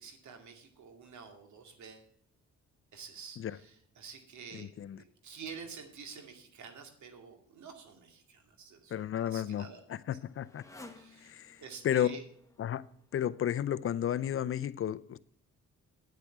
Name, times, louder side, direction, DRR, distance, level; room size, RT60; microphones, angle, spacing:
voice 1, 0.0-2.1 2.9-4.7 5.0-9.8 11.0-11.3 11.6-12.2, right 6 dB, 70° right, 2.4 m, -49 dB
voice 2, 4.5-5.0 8.9-10.6 11.2-12.2 12.6-12.8 13.1-15.2, left 10 dB, 45° left, 0.6 m, -33 dB
Motorcycle, 8.7-14.1, left 2 dB, 10° left, 1.4 m, -57 dB
9.3 x 8.4 x 5.9 m
cardioid pair, 90°, 30 cm